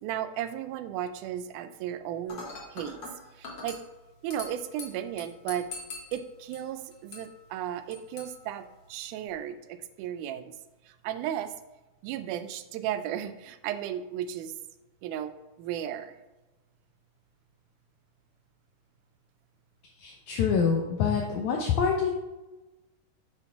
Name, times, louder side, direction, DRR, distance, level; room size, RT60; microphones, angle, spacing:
voice 1, 0.0-2.4 2.7-3.0 3.3-3.8 4.2-5.7 6.1-10.6 10.9-11.5 12.0-14.6 15.0-16.2, right 10 dB, 80° right, 10 dB, 2.0 m, -35 dB
Dishes pots and pans / Glass, 2.3-9.3, left 3 dB, 50° left, 1.4 m, -45 dB
voice 2, 20.0-22.1, left 6 dB, 75° left, 1 dB, 2.0 m, -26 dB
7.0 x 4.2 x 5.7 m, 1.1 s
omnidirectional pair, 3.7 m